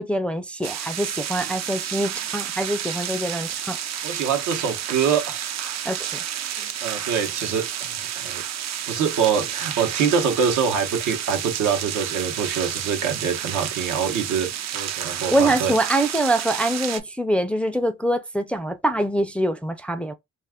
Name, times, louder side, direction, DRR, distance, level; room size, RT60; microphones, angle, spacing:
voice 1, 0.0-3.8 5.9-6.1 15.3-20.1, right 1 dB, 5° left, 0.3 m, -24 dB
sound 1, 0.6-17.0, right 10 dB, 60° right, 0.5 m, -30 dB
voice 2, 4.0-5.4 6.8-7.9 8.1-8.4 8.9-15.7, right 7 dB, 80° right, 0.9 m, -24 dB
2.5 x 2.4 x 3.4 m
cardioid pair, 90°, 30 cm